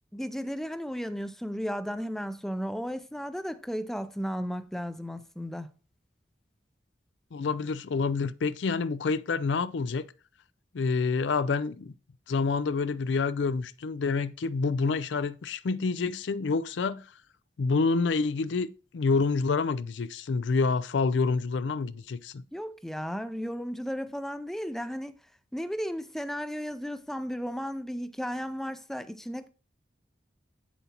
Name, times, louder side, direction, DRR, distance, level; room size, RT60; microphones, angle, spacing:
voice 1, 0.1-5.7 22.5-25.2 25.5-29.5, equal, ahead, 0.4 m, -34 dB
voice 2, 7.3-10.0 10.7-11.9 12.3-17.0 17.6-22.4, left 4 dB, 85° left, 0.4 m, -28 dB
8.3 x 7.1 x 2.9 m
head